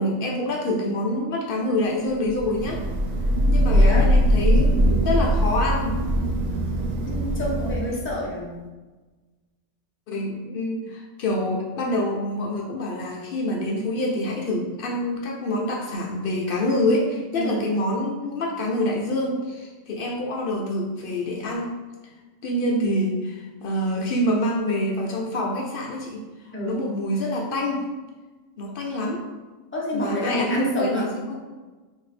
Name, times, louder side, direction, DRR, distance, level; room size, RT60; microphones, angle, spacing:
voice 1, 0.0-2.8 3.5-4.7 5.0-6.0 10.1-21.8 22.4-27.8 28.6-29.2 29.9-31.4, left 1 dB, 70° left, -1 dB, 0.5 m, -26 dB
Thunder / Rain, 2.4-8.1, equal, 75° right, 1.0 m, -21 dB
voice 2, 3.7-4.1 7.1-8.5 17.3-17.6 26.5-26.9 29.7-31.1, left 1 dB, 15° left, -5 dB, 0.5 m, -28 dB
2.7 x 2.6 x 4.0 m, 1.2 s
omnidirectional pair, 1.5 m